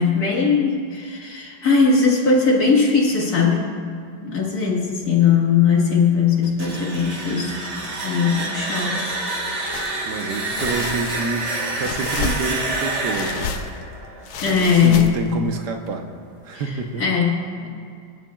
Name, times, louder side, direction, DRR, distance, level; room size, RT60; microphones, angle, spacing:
voice 1, 0.0-3.7 4.2-7.6 8.0-9.1 14.4-15.2 16.5-17.7, left 5 dB, 55° left, -4 dB, 2.3 m, -19 dB
sound 1, 6.4-15.2, right 2 dB, 45° right, 1.5 m, -28 dB
sound 2, 9.7-10.0 10.5-11.4 11.8-12.7 13.1-13.8 14.2-15.4, left 5 dB, 70° left, 1.3 m, -30 dB
voice 2, 10.0-11.5 11.8-13.5 14.5-16.1 16.4-17.0, right 4 dB, 70° right, 4 dB, 1.5 m, -28 dB
25.0 x 10.0 x 2.4 m, 2.3 s
omnidirectional pair, 2.0 m